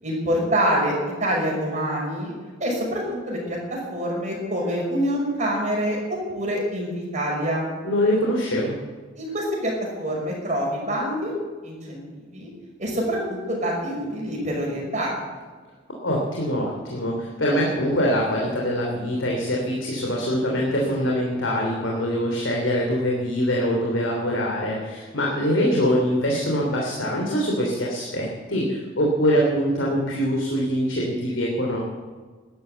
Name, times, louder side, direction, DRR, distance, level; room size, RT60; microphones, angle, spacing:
voice 1, 0.0-0.9 1.2-2.3 2.6-6.0 6.3-7.7 9.2-9.7 10.0-11.3 11.6-12.0 12.3-12.5 12.8-15.1, equal, 40° right, -2 dB, 5.8 m, -26 dB
voice 2, 7.8-8.8 16.0-31.8, equal, 90° left, -2 dB, 3.1 m, -23 dB
13.0 x 11.5 x 8.0 m, 1.5 s
head